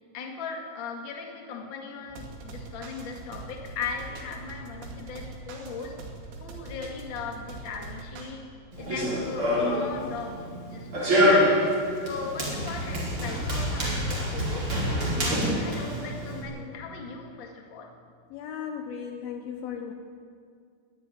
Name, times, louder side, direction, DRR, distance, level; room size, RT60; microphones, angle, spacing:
voice 1, 0.1-5.9 6.4-8.4 8.8-10.4 10.6-10.9 11.3-11.7 12.0-14.7 15.2-17.9, left 5 dB, 45° left, 1 dB, 1.5 m, -38 dB
sound 1, 2.1-8.3, right 3 dB, 75° right, 5.1 m, -42 dB
Run, 8.7-16.4, equal, 25° right, 5.2 m, -26 dB
voice 2, 18.3-19.9, left 7 dB, 90° left, 5 dB, 2.1 m, -36 dB
21.0 x 13.5 x 10.0 m, 2.2 s
omnidirectional pair, 5.8 m